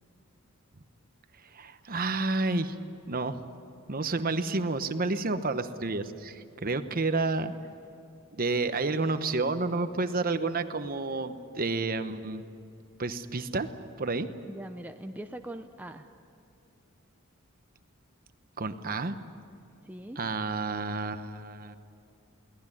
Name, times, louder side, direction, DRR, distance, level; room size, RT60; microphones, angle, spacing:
voice 1, 1.5-2.8 3.1-3.4 3.9-7.5 8.4-12.4 13.0-13.7 14.0-14.3 18.6-19.2 20.2-21.8, right 3 dB, 40° right, 10 dB, 1.0 m, -30 dB
voice 2, 14.4-16.1 19.8-20.3, right 1 dB, 10° right, 5 dB, 0.6 m, -41 dB
23.0 x 18.0 x 10.0 m, 2.6 s
head